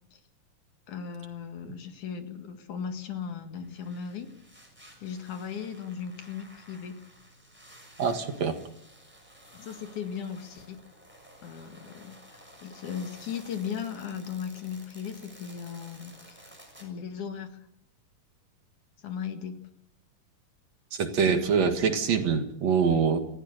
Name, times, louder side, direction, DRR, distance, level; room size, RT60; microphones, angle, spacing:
voice 1, 0.9-4.3 5.0-7.0 9.5-10.8 11.4-16.5 16.8-17.6 19.0-19.6, left 7 dB, 70° left, 6 dB, 3.3 m, -37 dB
sound 1, 3.5-16.8, equal, 5° right, 6.4 m, -53 dB
voice 2, 8.0-8.6 21.0-23.2, right 6 dB, 60° right, 6 dB, 2.8 m, -24 dB
30.0 x 15.5 x 6.7 m, 0.76 s
omnidirectional pair, 3.7 m